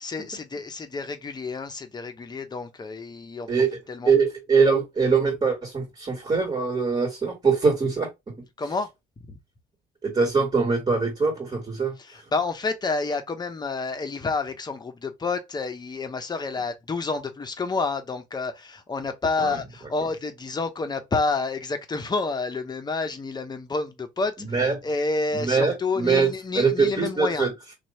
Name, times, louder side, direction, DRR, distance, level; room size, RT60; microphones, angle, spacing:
voice 1, 0.0-3.5 3.9-4.1 8.6-8.9 9.3-9.4 12.1-27.5, left 3 dB, 25° left, 0.9 m, -29 dB
voice 2, 4.0-8.3 10.0-12.0 19.4-19.6 24.5-24.7 25.3-26.3 26.6-27.5, right 5 dB, 30° right, 2.0 m, -23 dB
3.0 x 2.5 x 4.3 m
cardioid pair, 110°, 17 cm